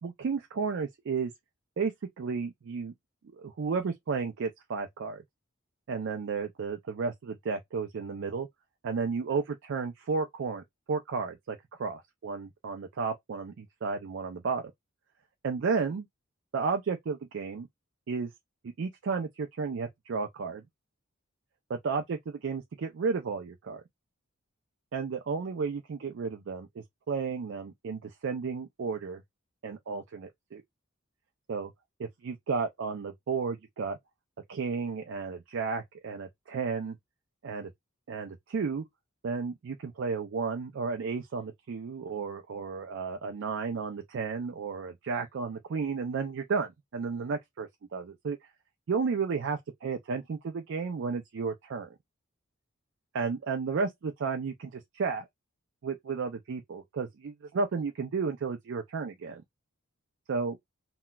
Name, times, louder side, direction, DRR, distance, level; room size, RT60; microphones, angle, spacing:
voice 1, 0.0-1.3 1.8-2.9 3.3-5.2 5.9-8.5 8.8-14.6 15.4-16.1 16.5-17.7 18.1-18.3 18.6-20.6 21.7-23.8 24.9-29.2 29.6-30.6 31.5-31.7 32.0-34.0 34.5-37.0 37.4-37.7 38.1-38.8 39.2-48.4 48.9-51.9 53.1-55.3 55.8-59.4 60.3-60.6, right 5 dB, 60° right, 0.4 m, -33 dB
4.0 x 2.2 x 2.2 m
head